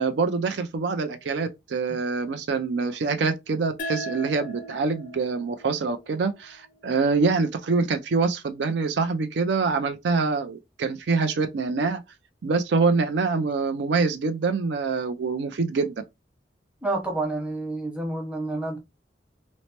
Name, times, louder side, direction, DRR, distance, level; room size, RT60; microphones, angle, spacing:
voice 1, 0.0-12.0 12.4-16.0, right 4 dB, 70° right, 0.4 m, -25 dB
sound 1, 3.8-7.0, right 1 dB, 50° left, 0.4 m, -38 dB
voice 2, 16.8-18.8, right 2 dB, 5° right, 0.8 m, -29 dB
3.1 x 2.0 x 2.8 m
head